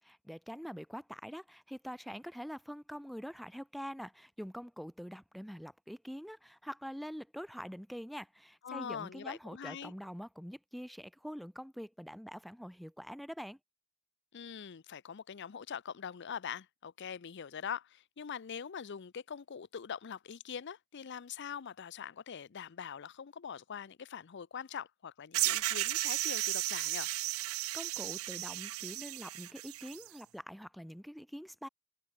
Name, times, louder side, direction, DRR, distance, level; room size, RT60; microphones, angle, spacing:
voice 1, 0.2-13.6 27.5-31.7, equal, ahead, 0.5 m, -45 dB
voice 2, 8.6-9.9 14.3-27.1, left 7 dB, 55° left, 0.5 m, -43 dB
sound 1, 25.3-30.1, right 17 dB, 80° right, 0.4 m, -34 dB
head